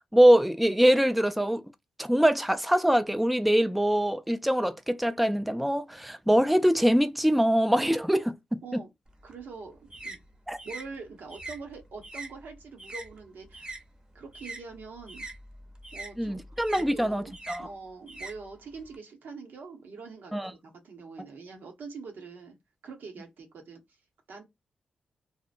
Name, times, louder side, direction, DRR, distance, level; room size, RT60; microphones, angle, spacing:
voice 1, 0.1-1.6 2.0-8.8 10.5-10.6 16.2-17.7 20.3-20.5, equal, ahead, 0.4 m, -23 dB
sound 1, 9.1-13.8 14.1-19.0, right 2 dB, 25° right, 0.8 m, -43 dB
voice 2, 9.2-10.2 10.6-13.7 14.1-15.3 15.9-17.3 17.6-22.6 22.8-23.8 24.3-24.4, right 4 dB, 75° right, 0.8 m, -44 dB
2.8 x 2.1 x 2.4 m
supercardioid pair, 40°, 3 cm